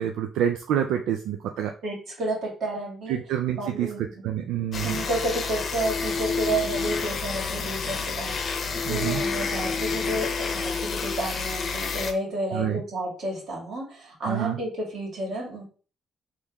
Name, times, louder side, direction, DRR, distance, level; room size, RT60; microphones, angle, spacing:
voice 1, 0.0-1.7 3.1-5.0 8.8-9.2 12.5-12.8 14.3-14.6, right 10 dB, 85° right, 4 dB, 0.4 m, -27 dB
voice 2, 1.8-3.2 3.5-4.1 4.8-15.6, right 1 dB, 65° right, -2 dB, 2.1 m, -31 dB
sound 1, 4.7-12.1, left 5 dB, 50° left, 0.7 m, -29 dB
3.6 x 3.1 x 3.5 m, 0.38 s
cardioid pair, 90°, 0 cm